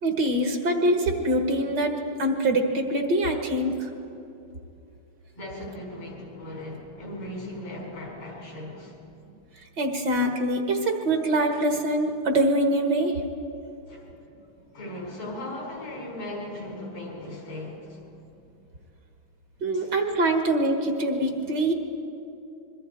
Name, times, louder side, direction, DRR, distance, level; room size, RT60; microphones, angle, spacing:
voice 1, 0.0-1.9 2.2-3.9 9.8-13.2 19.6-21.7, right 1 dB, 55° right, 4 dB, 2.3 m, -24 dB
voice 2, 5.3-9.0 13.9-14.3 14.7-18.2 19.7-19.9, left 1 dB, 85° left, -2 dB, 5.8 m, -38 dB
25.5 x 22.5 x 4.6 m, 2.7 s
omnidirectional pair, 2.3 m